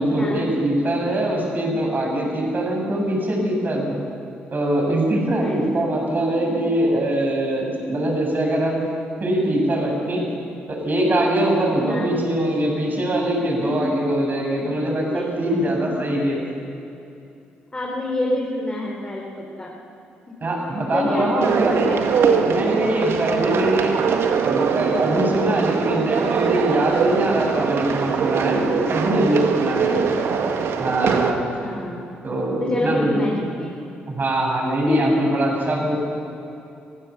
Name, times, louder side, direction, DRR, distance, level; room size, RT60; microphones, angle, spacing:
voice 1, 0.0-4.0 4.5-8.8 9.2-10.3 10.7-16.4 20.4-21.8 22.5-23.9 24.4-30.0 30.8-31.5 32.2-33.2 34.1-36.0, right 1 dB, 40° right, 0 dB, 7.2 m, -22 dB
voice 2, 5.4-5.8 11.8-12.1 13.6-13.7 14.5-15.9 17.7-19.8 20.9-22.5 29.9-30.7 31.6-32.1 32.6-33.7 34.9-35.3, left 1 dB, 25° left, -2 dB, 4.3 m, -27 dB
sound 1, 21.4-31.3, right 6 dB, 65° right, 1.7 m, -22 dB
24.5 x 16.0 x 7.1 m, 2.7 s
hypercardioid pair, 45°, 5 cm